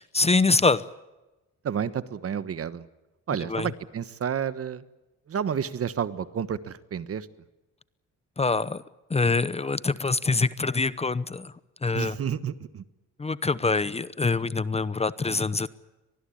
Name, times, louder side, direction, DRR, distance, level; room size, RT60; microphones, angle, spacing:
voice 1, 0.1-0.9 3.5-3.7 8.4-8.8 9.1-11.5 11.8-12.2 13.2-15.7, left 3 dB, 20° left, 16 dB, 0.8 m, -25 dB
voice 2, 1.6-2.9 3.3-4.8 5.3-7.3 11.9-12.8, right 8 dB, 50° right, 14 dB, 1.3 m, -30 dB
24.0 x 19.5 x 8.6 m, 1.1 s
cardioid pair, 90°, 30 cm